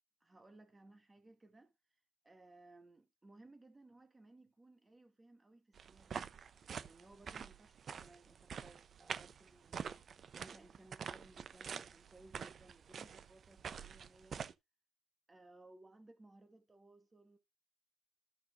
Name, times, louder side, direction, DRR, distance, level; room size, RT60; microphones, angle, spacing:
voice 1, 0.2-1.7 2.2-6.2 6.8-10.0 10.4-14.5 15.3-17.4, right 2 dB, 15° right, 2.2 m, -61 dB
sound 1, 5.8-14.5, right 7 dB, 40° right, 0.7 m, -46 dB
14.0 x 6.0 x 2.6 m
cardioid pair, 130°, 0 cm